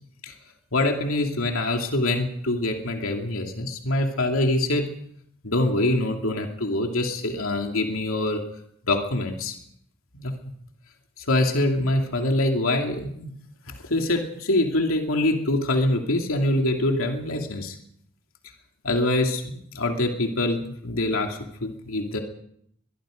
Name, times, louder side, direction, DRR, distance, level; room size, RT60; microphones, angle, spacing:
voice 1, 0.7-4.9 5.4-8.4 8.9-9.5 10.1-10.3 11.3-13.3 13.9-17.7 18.8-22.2, left 1 dB, 80° left, 3 dB, 2.6 m, -24 dB
23.0 x 22.5 x 5.1 m, 0.70 s
head